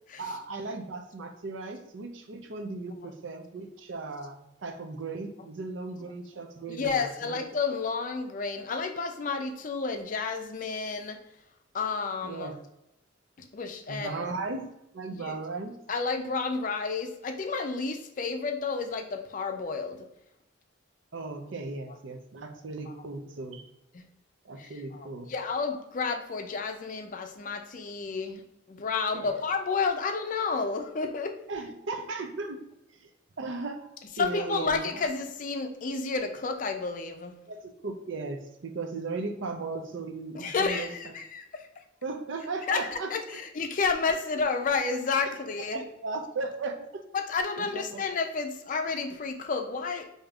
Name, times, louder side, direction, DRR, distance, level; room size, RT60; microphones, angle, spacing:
voice 1, 0.2-7.4 12.2-12.5 13.9-14.6 14.9-15.7 21.1-23.6 24.4-25.3 29.1-29.4 31.5-32.6 33.0-33.1 33.4-33.9 34.2-35.0 37.5-41.1 42.0-43.4 45.2-47.0 47.6-48.0, right 3 dB, 70° right, 6 dB, 0.5 m, -37 dB
voice 2, 6.7-11.2 11.7-12.5 13.4-14.2 15.1-15.3 15.9-20.1 24.6-28.4 28.7-31.3 34.2-37.3 40.3-41.6 42.7-45.8 47.1-50.0, left 4 dB, 40° left, 5 dB, 0.4 m, -31 dB
4.9 x 2.7 x 2.3 m, 0.87 s
head